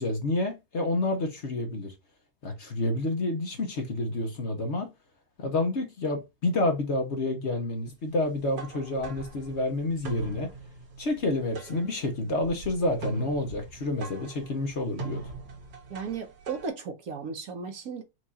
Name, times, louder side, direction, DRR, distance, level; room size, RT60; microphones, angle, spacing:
voice 1, 0.0-1.9 2.4-4.9 5.4-10.5 11.0-15.2, left 2 dB, 50° left, 1.1 m, -29 dB
sound 1, 8.3-16.7, right 3 dB, 90° right, 1.8 m, -41 dB
voice 2, 15.9-18.0, right 5 dB, 65° right, 1.3 m, -35 dB
4.7 x 2.5 x 4.0 m
omnidirectional pair, 1.7 m